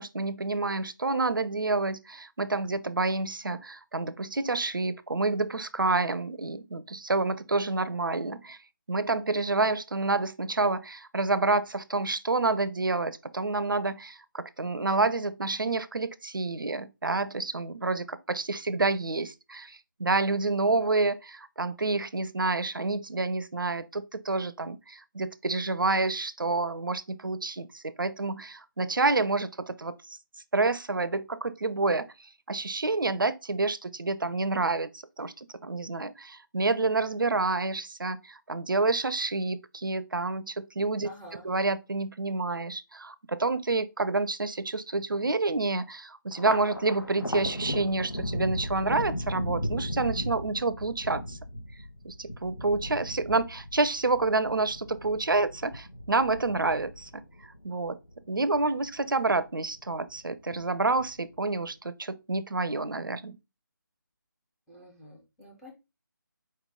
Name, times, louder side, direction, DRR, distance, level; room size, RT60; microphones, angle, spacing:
voice 1, 0.0-8.6 8.9-30.0 30.5-32.1 32.5-51.4 52.0-57.1 57.6-58.0 58.3-63.4, right 3 dB, 75° right, 0.5 m, -28 dB
voice 2, 41.0-41.5 64.7-65.7, left 1 dB, ahead, 0.4 m, -48 dB
Thunder, 46.3-59.0 59.4-60.2 60.5-61.4, left 1 dB, 85° left, 1.2 m, -36 dB
4.6 x 3.1 x 3.5 m
figure-of-eight pair, 155°, 11 cm